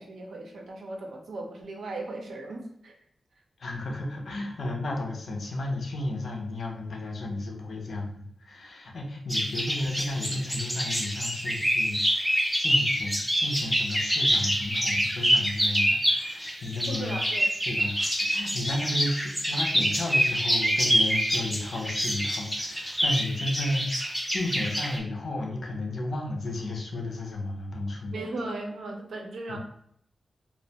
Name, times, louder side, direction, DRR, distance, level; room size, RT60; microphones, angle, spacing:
voice 1, 0.0-2.9 16.9-17.4 28.1-29.6, right 2 dB, 75° right, 1 dB, 0.5 m, -37 dB
voice 2, 3.6-17.2 17.7-28.1 29.5-29.6, left 2 dB, 55° left, 1 dB, 0.5 m, -33 dB
sound 1, 9.3-25.0, equal, ahead, 0.4 m, -26 dB
2.4 x 2.1 x 2.7 m, 0.68 s
wide cardioid pair, 170°, 0 cm